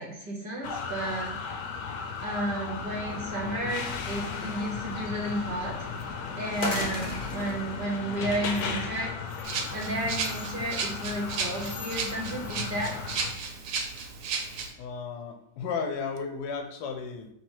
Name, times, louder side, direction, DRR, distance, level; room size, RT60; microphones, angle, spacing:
voice 1, 0.0-1.6 2.2-5.9 6.3-9.1 9.7-12.9, right 1 dB, 45° right, -1 dB, 0.7 m, -32 dB
sound 1, 0.6-13.3, left 5 dB, 70° left, 1.0 m, -36 dB
sound 2, 2.9-9.1, left 1 dB, 45° left, 0.7 m, -39 dB
Rattle (instrument), 9.4-14.7, right 5 dB, 85° right, 1.3 m, -34 dB
voice 2, 14.8-17.3, left 5 dB, 90° left, 5 dB, 1.2 m, -34 dB
3.3 x 3.0 x 4.5 m, 0.77 s
omnidirectional pair, 1.8 m